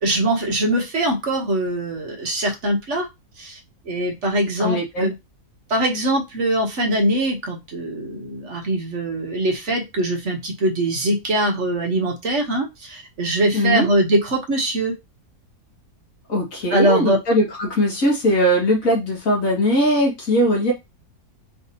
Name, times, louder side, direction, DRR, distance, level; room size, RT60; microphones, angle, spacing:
voice 1, 0.0-3.1 3.4-3.6 3.9-5.1 5.7-14.9 16.7-17.2, right 1 dB, 50° right, 2 dB, 1.2 m, -22 dB
voice 2, 4.6-5.1 13.5-13.9 16.3-20.7, equal, 55° left, -1 dB, 2.1 m, -20 dB
4.8 x 3.4 x 2.8 m, 0.21 s
omnidirectional pair, 1.7 m